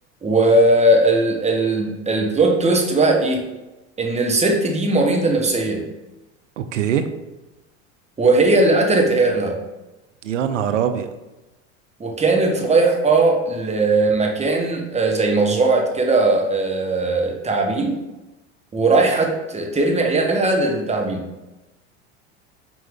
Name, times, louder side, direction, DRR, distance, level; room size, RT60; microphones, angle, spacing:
voice 1, 0.2-3.5 4.0-5.8 8.2-9.6 12.0-18.0 18.7-21.3, right 2 dB, 15° right, 1 dB, 1.3 m, -18 dB
voice 2, 6.6-7.1 10.2-11.1, right 9 dB, 85° right, 9 dB, 0.7 m, -22 dB
6.1 x 4.4 x 3.7 m, 1.0 s
hypercardioid pair, 85°, 37 cm